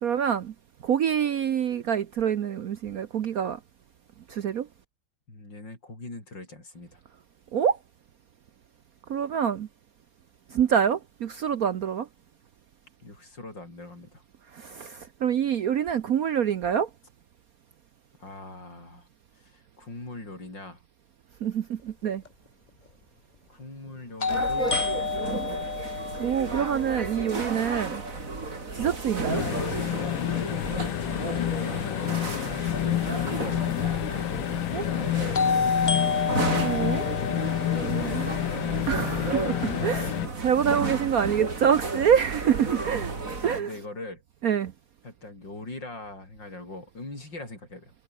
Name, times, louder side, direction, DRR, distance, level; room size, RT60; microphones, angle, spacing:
voice 1, 0.0-0.5 0.8-3.6 4.3-4.7 7.5-7.8 9.1-9.7 10.5-12.1 14.5-16.9 21.4-22.2 26.2-28.0 28.7-29.4 34.7-34.8 35.4-35.9 36.6-37.1 37.8-38.4 38.9-43.1 43.4-43.7 44.4-44.7, right 8 dB, 60° right, 1.1 m, -26 dB
voice 2, 5.3-7.0 13.0-14.2 18.2-20.8 23.5-24.8 25.2-25.7 30.8-34.1 40.5-40.9 42.7-42.9 43.4-44.2 45.0-47.9, left 2 dB, 65° left, 8.2 m, -42 dB
sound 1, 22.2-22.3 24.2-28.1 35.3-39.4, left 4 dB, 30° left, 1.1 m, -30 dB
sound 2, 24.3-43.6, right 3 dB, 40° right, 3.7 m, -33 dB
sound 3, 29.3-40.3, left 14 dB, 85° left, 1.5 m, -29 dB
omnidirectional pair, 2.1 m